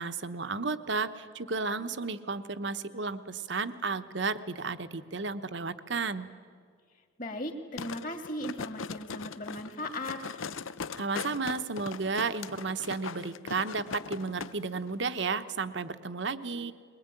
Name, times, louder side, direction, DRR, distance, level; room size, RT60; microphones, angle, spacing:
voice 1, 0.0-6.3 11.0-16.7, right 4 dB, 60° right, 11 dB, 1.0 m, -33 dB
voice 2, 7.2-10.2, left 1 dB, 40° left, 6 dB, 2.5 m, -37 dB
sound 1, 7.8-14.5 14.9-15.0, left 5 dB, 80° left, 0.7 m, -40 dB
21.5 x 21.5 x 9.9 m, 2.1 s
head